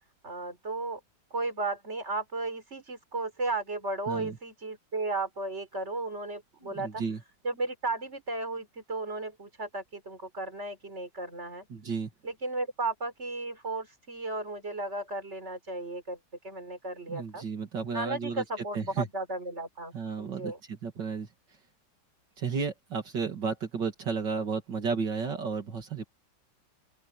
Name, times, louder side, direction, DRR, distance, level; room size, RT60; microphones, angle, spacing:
voice 1, 0.2-1.0 1.3-7.0 7.4-11.7 12.2-16.2 16.4-17.4 17.9-20.6, right 2 dB, 35° right, 4.9 m, -34 dB
voice 2, 4.1-4.4 6.6-7.2 11.7-12.1 17.1-18.4 18.7-19.1 19.9-21.3 22.4-26.0, right 5 dB, 75° right, 3.0 m, -33 dB
open air
omnidirectional pair, 2.0 m